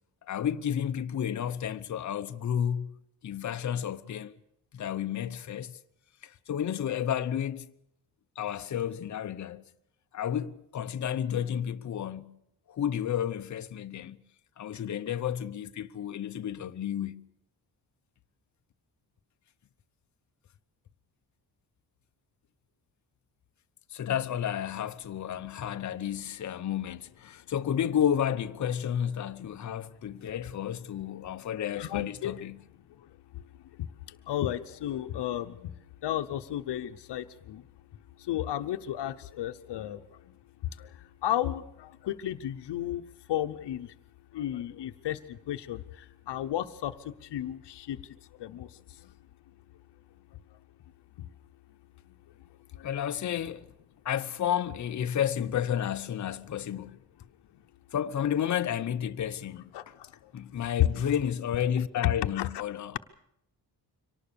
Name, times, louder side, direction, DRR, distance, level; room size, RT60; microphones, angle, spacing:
voice 1, 0.3-4.3 4.7-5.8 6.2-7.7 8.4-9.6 10.1-12.4 12.7-14.2 14.6-17.2 23.9-32.6 52.8-53.6 54.0-57.0 57.9-59.7 60.3-63.0, left 9 dB, 45° left, 0.8 m, -31 dB
voice 2, 31.8-32.3 34.3-35.5 36.0-37.6 38.3-40.0 41.2-41.6 42.0-43.0 43.3-43.9 44.3-45.2 45.5-45.8 46.3-46.9 47.3-48.0 48.4-48.7 59.7-59.8 60.8-61.1 62.0-62.5, left 12 dB, 90° left, 0.9 m, -32 dB
24.0 x 18.5 x 6.8 m
wide cardioid pair, 170°, 40 cm